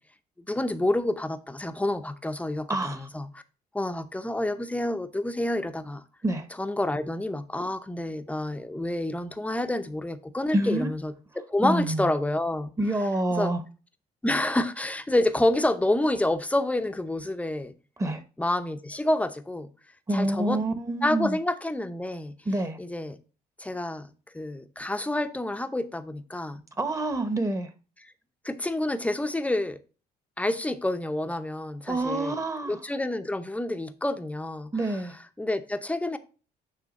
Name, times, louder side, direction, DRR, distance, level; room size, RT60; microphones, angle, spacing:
voice 1, 0.5-3.3 3.7-6.0 6.6-12.7 13.4-13.5 14.2-17.7 18.4-19.7 20.1-20.6 21.0-22.3 22.8-23.2 23.6-26.6 28.4-29.8 30.4-32.3 32.7-34.7 35.4-36.2, left 1 dB, 10° left, 0.7 m, -28 dB
voice 2, 2.7-3.1 6.2-6.5 10.5-10.9 11.6-12.1 12.8-13.6 18.0-18.2 20.1-21.4 22.4-22.8 26.8-27.7 31.9-32.8 34.7-35.2, right 1 dB, 20° right, 1.0 m, -27 dB
9.1 x 3.4 x 5.2 m
cardioid pair, 110°, 17 cm